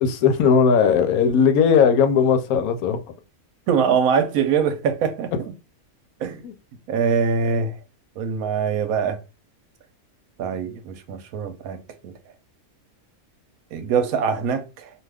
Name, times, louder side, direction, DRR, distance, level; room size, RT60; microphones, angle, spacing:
voice 1, 0.0-3.0 5.3-5.4 6.4-6.5, left 6 dB, 85° left, 1.1 m, -18 dB
voice 2, 3.7-5.3 6.2-6.4 6.9-7.7 8.2-9.2 10.4-12.1 13.7-14.9, right 6 dB, 85° right, 1.1 m, -23 dB
2.6 x 2.3 x 3.3 m
omnidirectional pair, 1.5 m